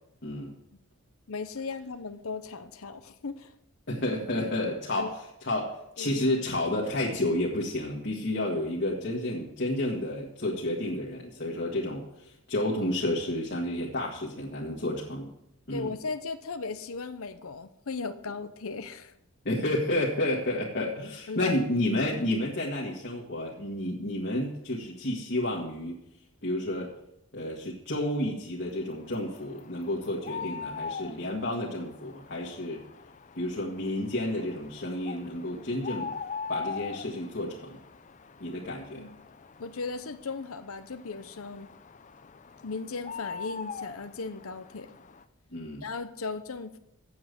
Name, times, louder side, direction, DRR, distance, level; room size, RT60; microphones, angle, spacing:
voice 1, 0.2-0.5 3.9-5.1 5.4-15.3 15.7-15.9 19.5-26.0 26.4-26.9 27.3-32.8 33.4-36.1 36.5-37.8 38.4-39.1 45.5-45.9, left 1 dB, 50° left, -3 dB, 1.8 m, -31 dB
voice 2, 1.3-3.5 5.0-5.1 6.0-6.2 15.7-19.1 21.3-21.6 38.9-39.2 39.6-41.7 42.6-44.9 45.8-46.8, left 4 dB, 75° left, 10 dB, 0.8 m, -37 dB
sound 1, 28.9-45.2, left 5 dB, 35° left, 0.5 m, -42 dB
8.4 x 7.4 x 8.2 m, 0.80 s
head